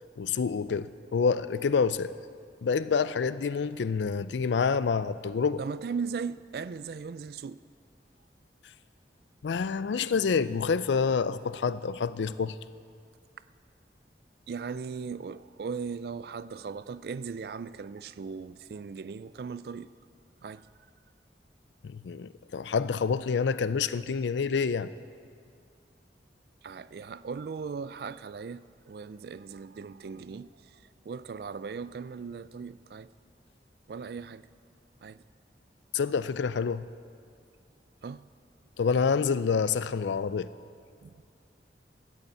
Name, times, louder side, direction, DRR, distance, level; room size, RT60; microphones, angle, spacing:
voice 1, 0.2-2.1 2.6-5.6 9.4-12.5 21.8-24.9 35.9-36.9 38.8-40.5, left 5 dB, 85° left, 0.4 m, -27 dB
voice 2, 5.6-7.6 14.5-19.9 20.4-20.7 26.6-33.1 33.9-34.5 35.0-35.2 38.0-38.3 41.0-41.2, right 5 dB, 60° right, 0.3 m, -38 dB
13.0 x 8.1 x 8.4 m
head